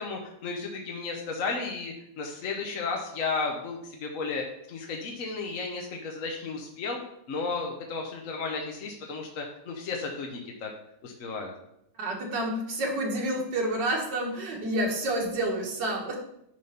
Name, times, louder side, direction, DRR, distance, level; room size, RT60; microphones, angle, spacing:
voice 1, 0.0-7.0 7.3-10.7 11.0-11.5, left 4 dB, 55° left, 1 dB, 1.1 m, -33 dB
voice 2, 12.0-16.2, right 1 dB, 65° right, 0 dB, 2.0 m, -29 dB
9.4 x 3.6 x 5.7 m, 0.77 s
omnidirectional pair, 2.1 m